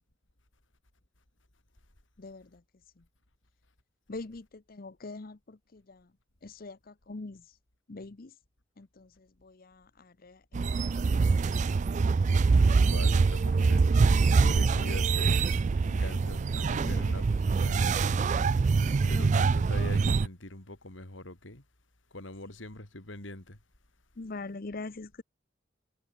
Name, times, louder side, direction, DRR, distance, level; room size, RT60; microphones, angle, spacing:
voice 1, 2.2-2.6 3.0-3.1 4.1-6.1 6.4-7.5 7.9-8.3 8.8-11.3 15.9-17.8 19.0-19.7 24.2-25.2, left 3 dB, 50° left, 0.8 m, -44 dB
sound 1, 10.5-20.3, right 4 dB, 40° right, 0.3 m, -24 dB
voice 2, 12.8-15.5 15.7-18.2 18.9-21.6 22.1-23.6, left 2 dB, 75° left, 3.7 m, -44 dB
head